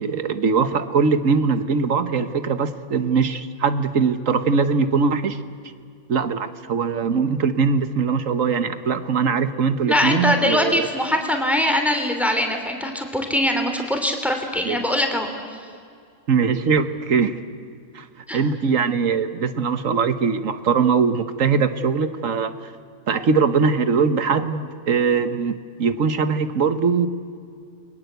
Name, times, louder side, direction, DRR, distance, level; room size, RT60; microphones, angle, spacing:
voice 1, 0.0-5.4 6.1-10.7 14.7-14.8 16.3-17.4 18.0-18.1 18.3-22.7 23.1-27.1, right 5 dB, 75° right, 11 dB, 1.6 m, -21 dB
voice 2, 9.9-15.3 18.3-18.4, left 1 dB, ahead, 4 dB, 3.0 m, -22 dB
29.5 x 22.5 x 8.1 m, 2.3 s
omnidirectional pair, 1.4 m